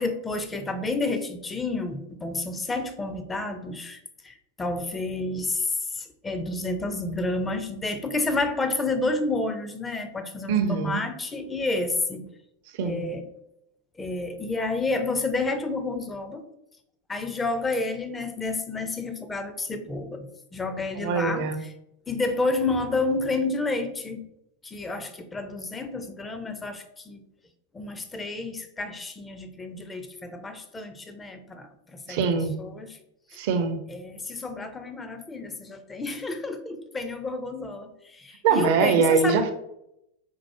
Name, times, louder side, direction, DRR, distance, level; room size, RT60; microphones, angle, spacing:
voice 1, 0.0-4.0 4.2-12.3 12.8-13.2 14.0-16.5 17.1-21.7 22.1-24.2 24.6-27.2 27.7-32.2 32.6-33.0 33.9-39.5, left 3 dB, 15° left, 8 dB, 0.4 m, -30 dB
voice 2, 10.5-11.0 12.7-13.1 21.0-21.6 32.1-32.6 33.3-33.8 38.4-39.5, right 5 dB, 50° right, 7 dB, 0.4 m, -23 dB
4.4 x 2.0 x 2.9 m, 0.82 s
figure-of-eight pair, 90°, 0 cm